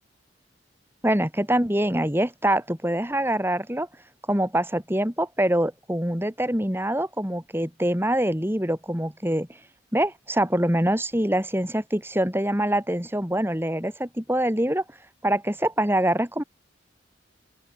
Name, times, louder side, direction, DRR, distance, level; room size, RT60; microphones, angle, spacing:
voice 1, 1.0-3.9 4.3-9.5 9.9-14.8 15.2-16.4, right 1 dB, 10° right, 3.7 m, -24 dB
open air
head